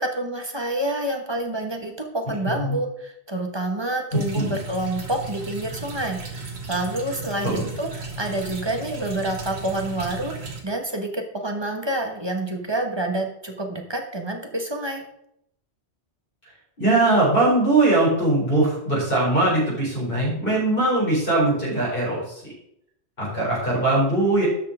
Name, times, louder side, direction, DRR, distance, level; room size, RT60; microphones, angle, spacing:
voice 1, 0.0-15.0, right 1 dB, 25° right, 3 dB, 1.3 m, -28 dB
voice 2, 4.1-4.6 7.4-7.7 16.8-22.4 23.2-24.5, right 2 dB, 55° left, -6 dB, 4.8 m, -21 dB
sound 1, 4.1-10.6, right 4 dB, 75° right, 1.8 m, -35 dB
12.0 x 5.6 x 5.0 m, 0.76 s
omnidirectional pair, 1.1 m